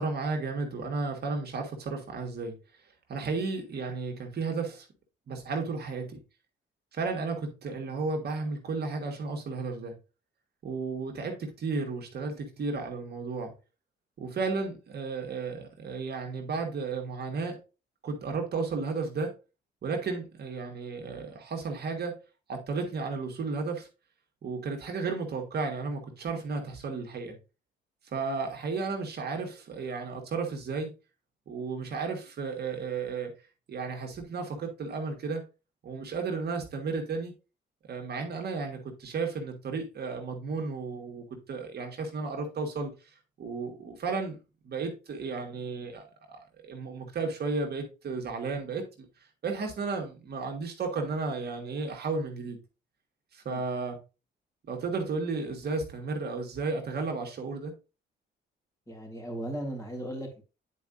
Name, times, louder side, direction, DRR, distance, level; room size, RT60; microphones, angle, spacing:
voice 1, 0.0-2.6 3.1-4.8 5.3-6.2 6.9-9.9 10.6-13.5 14.2-17.6 18.0-19.3 19.8-22.2 22.5-23.9 24.4-27.4 28.1-30.9 31.5-33.3 33.7-35.4 35.8-37.3 37.9-42.9 43.4-44.4 44.6-48.8 49.4-52.6 53.3-54.0 54.7-57.7, right 4 dB, 55° right, 1.6 m, -33 dB
voice 2, 58.9-60.4, right 1 dB, 15° left, 3.0 m, -37 dB
9.2 x 4.7 x 2.6 m
cardioid pair, 90°, 20 cm